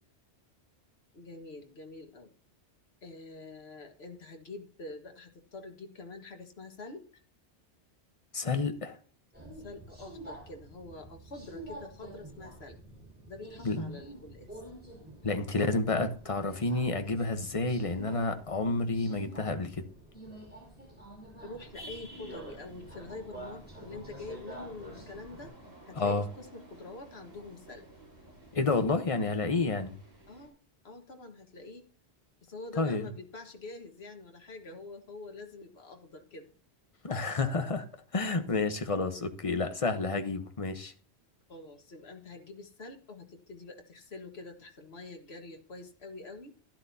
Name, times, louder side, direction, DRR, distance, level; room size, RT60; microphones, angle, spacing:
voice 1, 1.1-2.3 3.0-7.1 9.6-12.8 13.3-14.6 21.4-25.5 25.9-27.9 30.3-30.6 30.8-31.9 32.4-36.5 41.5-46.6, left 2 dB, 70° left, 1.9 m, -46 dB
voice 2, 8.3-9.0 13.6-14.0 15.2-19.8 25.9-26.2 28.5-29.9 32.8-33.1 37.0-37.8 38.1-40.9, left 3 dB, 30° left, 1.1 m, -30 dB
Subway metro underground, 9.3-25.5, right 1 dB, 10° right, 5.2 m, -48 dB
sound 1, 21.6-30.5, right 1 dB, 40° right, 5.5 m, -53 dB
12.0 x 11.5 x 2.8 m
omnidirectional pair, 1.1 m